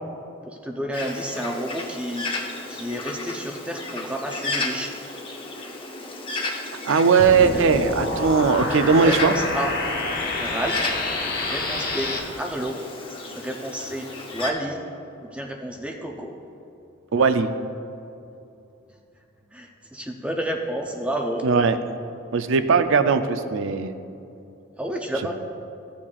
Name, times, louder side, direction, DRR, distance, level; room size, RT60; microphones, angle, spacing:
voice 1, 0.4-2.3 2.7-5.0 7.5-7.6 8.9-9.7 10.4-11.0 11.4-12.1 12.4-12.8 13.3-14.8 15.2-16.3 19.5-21.5 24.8-25.3, right 1 dB, 5° right, 1 dB, 0.6 m, -30 dB
Bird, 0.9-14.5, left 2 dB, 25° left, 0.8 m, -34 dB
voice 2, 6.8-9.3 17.1-17.5 21.4-21.8 22.3-23.9, right 5 dB, 65° right, 10 dB, 0.5 m, -19 dB
sound 1, 7.2-12.2, left 2 dB, 45° left, 1.0 m, -28 dB
15.0 x 7.3 x 2.4 m, 2.6 s
head